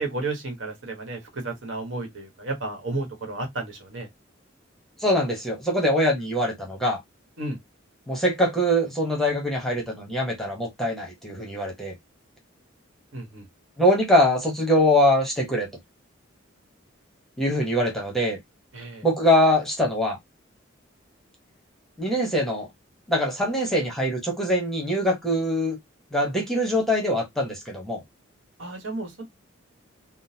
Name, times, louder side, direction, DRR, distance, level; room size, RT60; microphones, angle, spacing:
voice 1, 0.0-4.1 7.4-7.6 13.1-13.5 18.7-19.1 28.6-29.2, right 2 dB, 70° right, 1.2 m, -32 dB
voice 2, 5.0-7.0 8.1-11.9 13.8-15.7 17.4-18.4 19.0-20.2 22.0-22.7 23.1-25.8 26.1-28.0, equal, ahead, 1.0 m, -23 dB
3.7 x 2.1 x 2.7 m
head